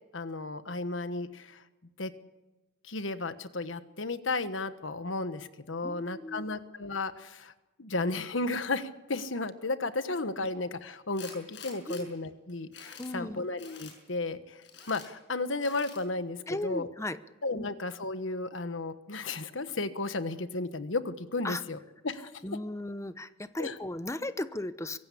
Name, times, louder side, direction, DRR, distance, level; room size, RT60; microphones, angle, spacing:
voice 1, 0.1-1.6 2.0-2.1 2.8-7.5 7.8-16.9 17.4-21.8 22.0-22.3 23.6-23.8, left 3 dB, 85° left, 11 dB, 1.3 m, -34 dB
voice 2, 5.8-6.6 11.9-12.1 13.0-13.5 16.5-17.2 17.5-17.7 21.4-21.6 22.4-25.0, left 1 dB, 15° left, 12 dB, 0.8 m, -36 dB
Tools, 11.1-12.0 12.5-13.1 13.6-14.0 14.6-15.1 15.6-16.0, left 6 dB, 70° left, 6.7 m, -47 dB
24.0 x 16.5 x 8.5 m, 1.1 s
head